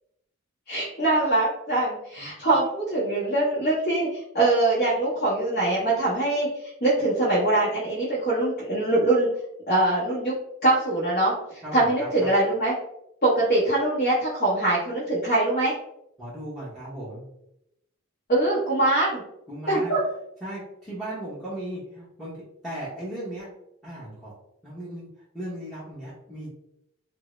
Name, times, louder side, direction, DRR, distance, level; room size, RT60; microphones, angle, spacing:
voice 1, 0.7-9.3 9.7-10.3 10.6-12.7 13.2-15.7 18.3-19.2 19.7-20.0, right 2 dB, 45° left, -8 dB, 0.8 m, -23 dB
voice 2, 11.6-12.3 16.2-17.3 19.5-19.9 20.4-23.5 23.8-24.3 24.6-25.1 25.3-26.5, right 1 dB, ahead, -10 dB, 0.7 m, -36 dB
3.4 x 2.0 x 3.0 m, 0.82 s
head